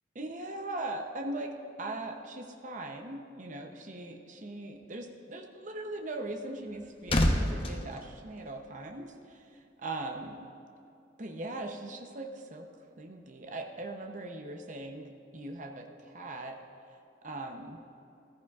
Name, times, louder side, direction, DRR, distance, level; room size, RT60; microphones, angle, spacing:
voice 1, 0.2-1.5 1.8-9.4 9.8-10.4 11.2-12.7 13.0-15.1 15.3-16.6 17.2-17.8, right 2 dB, 40° right, 3 dB, 0.7 m, -40 dB
sound 1, 6.3-9.0 9.3-9.6, left 1 dB, 30° left, 0.8 m, -30 dB
15.0 x 14.5 x 2.4 m, 2.7 s
head